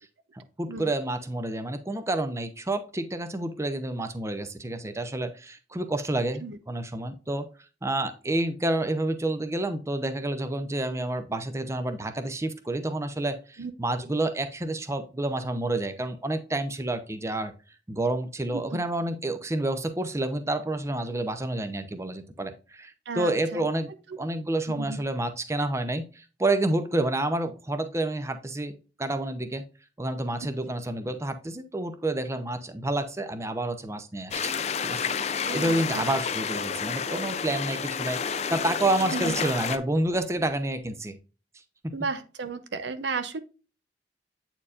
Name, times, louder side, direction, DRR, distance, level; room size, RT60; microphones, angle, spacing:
voice 1, 0.3-7.5 7.8-17.5 17.9-23.9 24.2-29.6 30.0-34.5 34.8-41.2, right 2 dB, 15° right, 0.6 m, -29 dB
voice 2, 23.1-23.7 24.7-25.0 35.4-36.0 39.1-39.4 41.9-43.4, right 4 dB, 80° right, 0.7 m, -33 dB
sound 1, 34.3-39.8, left 6 dB, 35° left, 0.4 m, -30 dB
8.4 x 4.5 x 2.5 m
head